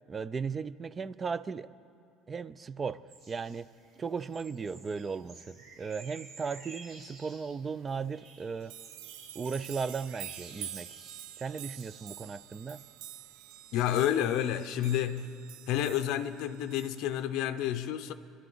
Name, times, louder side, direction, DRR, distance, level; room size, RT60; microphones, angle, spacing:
voice 1, 0.1-1.7 2.3-3.0 3.3-3.7 4.0-8.7 9.3-10.9 11.4-12.8, right 5 dB, 20° right, 0.3 m, -36 dB
sound 1, 3.1-14.9, right 3 dB, 40° right, 2.1 m, -54 dB
sound 2, 7.9-8.0 8.3-17.3, right 11 dB, 85° right, 0.6 m, -47 dB
voice 2, 13.7-15.3 15.7-18.1, left 11 dB, 60° left, 0.6 m, -30 dB
25.5 x 11.0 x 4.0 m
cardioid pair, 165°, 0 cm